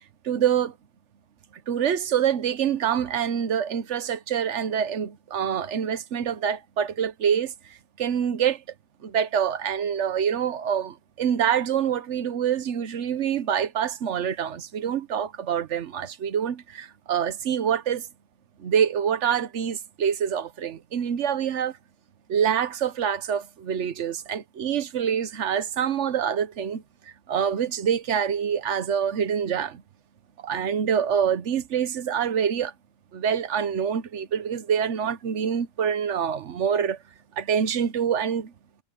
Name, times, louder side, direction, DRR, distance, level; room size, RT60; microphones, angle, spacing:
voice 1, 0.2-0.7 1.7-7.5 8.0-8.6 9.0-18.1 18.6-21.8 22.3-26.8 27.3-29.8 30.4-32.7 33.1-37.0 37.4-38.5, right 8 dB, 80° right, 1.2 m, -26 dB
omnidirectional pair, 1.2 m